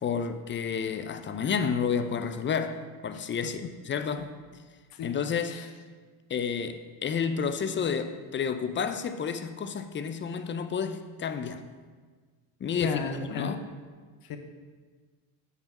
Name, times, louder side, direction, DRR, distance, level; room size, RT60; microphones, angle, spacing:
voice 1, 0.0-4.3 5.0-5.6 6.3-11.6 12.6-13.6, left 6 dB, 25° left, 0.5 m, -30 dB
voice 2, 12.8-13.6 14.2-14.4, left 5 dB, 50° left, 0.9 m, -34 dB
8.2 x 3.4 x 6.0 m
supercardioid pair, 95°, 45 cm